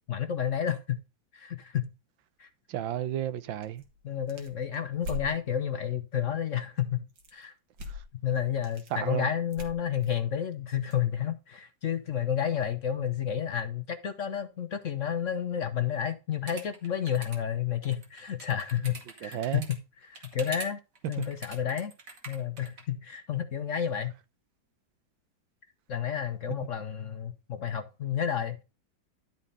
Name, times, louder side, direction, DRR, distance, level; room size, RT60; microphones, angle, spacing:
voice 1, 0.1-1.0 1.3-1.9 2.4-2.5 4.0-7.0 7.3-7.5 8.2-19.4 19.7-20.8 21.1-21.9 22.3-24.1 25.9-28.6, left 9 dB, 55° left, 0.9 m, -31 dB
voice 2, 2.7-3.8 8.9-9.3 19.2-19.7 21.2-21.3, right 11 dB, 90° right, 1.6 m, -32 dB
sound 1, 3.6-5.4 7.1-7.4 7.7-8.1 8.4-8.9 9.5-11.0, left 2 dB, 75° right, 2.5 m, -41 dB
sound 2, 16.5-17.4 17.8-19.8 20.1-20.7 21.0-22.8, right 3 dB, 45° right, 2.3 m, -44 dB
12.0 x 4.2 x 5.4 m
omnidirectional pair, 2.0 m